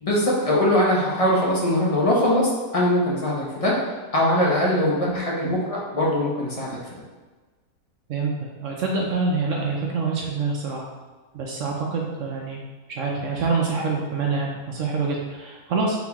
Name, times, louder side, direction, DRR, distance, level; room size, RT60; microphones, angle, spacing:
voice 1, 0.0-3.8 4.1-6.8, left 1 dB, 30° left, -4 dB, 0.7 m, -21 dB
voice 2, 8.1-10.9 11.3-12.6 12.9-16.0, right 4 dB, 65° right, -1 dB, 0.8 m, -26 dB
4.0 x 3.9 x 2.9 m, 1.3 s
omnidirectional pair, 1.6 m